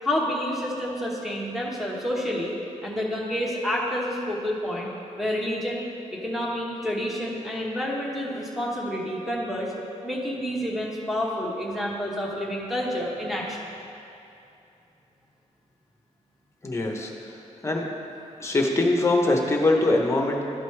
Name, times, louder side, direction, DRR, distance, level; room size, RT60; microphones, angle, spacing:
voice 1, 0.0-2.5 2.8-4.9 5.2-5.9 6.1-9.7 10.0-13.6, equal, ahead, -4 dB, 1.2 m, -29 dB
voice 2, 16.6-17.1 17.6-17.9 18.4-20.4, left 2 dB, 20° left, 1 dB, 0.9 m, -22 dB
12.5 x 5.2 x 3.2 m, 2.7 s
wide cardioid pair, 140°, 13 cm